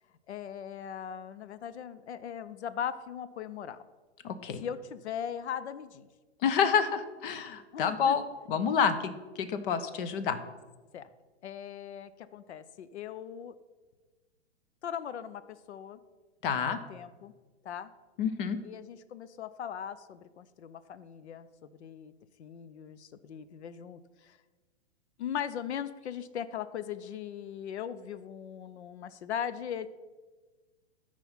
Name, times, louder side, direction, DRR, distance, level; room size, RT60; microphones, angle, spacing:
voice 1, 0.3-3.8 4.6-6.1 7.7-8.2 10.9-11.1 11.4-13.5 14.8-16.0 16.7-17.3 17.6-17.9 18.6-22.1 22.4-24.4 25.2-29.9, left 9 dB, 80° left, 14 dB, 0.6 m, -39 dB
voice 2, 4.2-4.6 6.4-9.1 9.4-10.4 16.4-16.8 18.2-18.6, left 7 dB, 55° left, 11 dB, 1.0 m, -28 dB
13.0 x 4.9 x 5.6 m, 1.3 s
hypercardioid pair, 120°, 33 cm